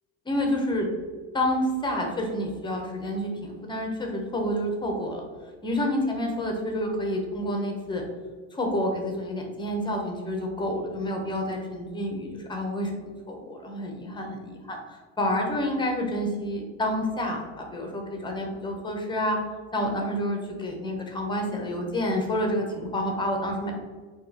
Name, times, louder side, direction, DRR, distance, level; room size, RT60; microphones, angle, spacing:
voice 1, 0.3-0.9 1.3-5.2 5.6-8.0 8.5-12.9 13.3-14.4 14.6-19.4 19.7-23.7, equal, 10° left, 2 dB, 0.6 m, -29 dB
4.5 x 2.9 x 4.0 m, 1.4 s
cardioid pair, 145°, 42 cm